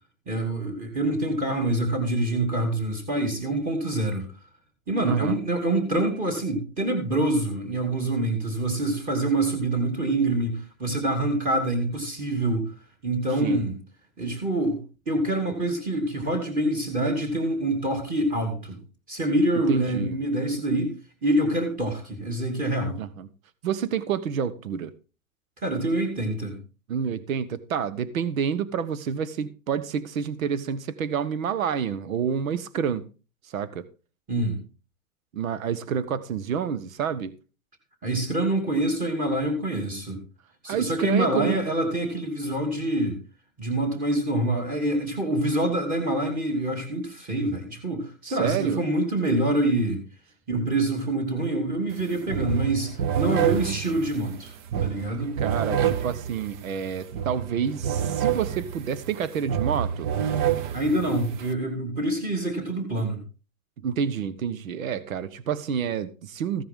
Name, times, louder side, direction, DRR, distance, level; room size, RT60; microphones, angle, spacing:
voice 1, 0.3-4.3 4.9-12.7 13.0-13.8 14.2-14.8 15.1-18.8 19.1-23.0 25.6-26.6 34.3-34.6 38.0-40.2 40.6-43.2 43.6-50.0 50.5-54.5 54.8-55.3 60.7-63.2, right 1 dB, 20° right, 2.9 m, -26 dB
voice 2, 5.0-5.4 13.4-13.6 19.7-20.2 23.0-23.3 23.6-24.9 26.9-33.0 33.5-33.8 35.3-37.3 40.7-41.6 48.2-48.8 55.4-60.1 63.8-66.6, right 7 dB, 80° right, 1.3 m, -28 dB
sound 1, 51.9-52.0 52.3-61.5, right 9 dB, 35° right, 0.8 m, -28 dB
15.0 x 10.5 x 3.7 m
hypercardioid pair, 155°, 40 cm